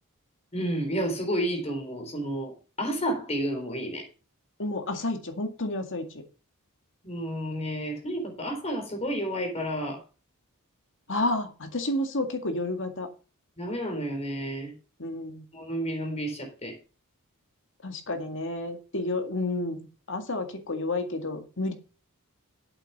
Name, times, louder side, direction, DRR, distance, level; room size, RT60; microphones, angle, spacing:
voice 1, 0.5-4.0 7.0-10.0 13.6-14.7 15.5-16.7, equal, 30° left, 3 dB, 4.0 m, -31 dB
voice 2, 4.6-6.1 11.1-13.1 15.0-15.4 17.8-21.7, left 2 dB, 60° left, 6 dB, 2.1 m, -30 dB
8.2 x 7.2 x 6.9 m, 0.35 s
head